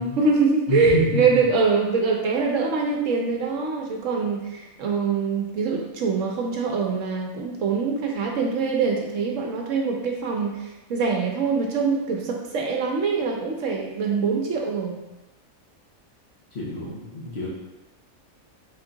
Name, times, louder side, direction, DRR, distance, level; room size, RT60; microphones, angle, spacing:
voice 1, 0.0-10.6 10.9-15.0, right 4 dB, 70° right, 1 dB, 1.0 m, -24 dB
voice 2, 0.7-1.4 16.5-17.5, left 2 dB, 50° left, -5 dB, 1.3 m, -27 dB
3.6 x 3.5 x 3.9 m, 1.0 s
omnidirectional pair, 1.5 m